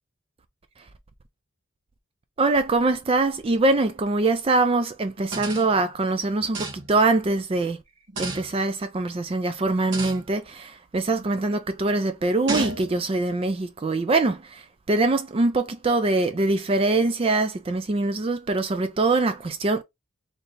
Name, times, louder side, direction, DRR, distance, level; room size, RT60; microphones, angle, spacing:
voice 1, 2.4-7.8 8.2-14.6 14.9-19.8, right 2 dB, 25° right, 0.4 m, -23 dB
sound 1, 5.2-5.9 6.5-7.1 8.1-8.6 9.9-10.3 11.1-11.4 12.5-13.1, right 2 dB, 60° right, 1.3 m, -32 dB
3.3 x 2.8 x 3.9 m
head